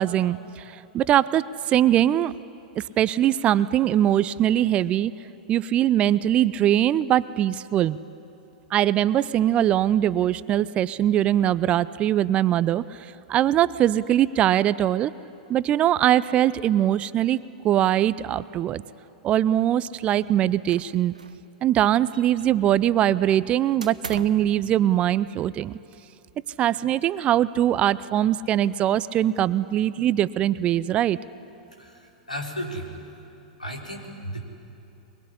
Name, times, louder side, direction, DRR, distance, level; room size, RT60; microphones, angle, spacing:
voice 1, 0.0-2.3 2.8-5.1 5.5-8.0 8.7-12.8 13.3-15.1 15.5-18.8 19.2-21.1 21.6-25.8 26.6-31.2, right 11 dB, 30° right, 18 dB, 0.6 m, -22 dB
sound 1, 20.7-21.5 21.7-22.7 23.8-24.5, right 4 dB, 80° right, 1.0 m, -39 dB
voice 2, 31.8-32.9 33.6-34.4, equal, 90° left, 1 dB, 4.0 m, -34 dB
23.0 x 22.0 x 9.9 m, 2.9 s
figure-of-eight pair, 100°, 4 cm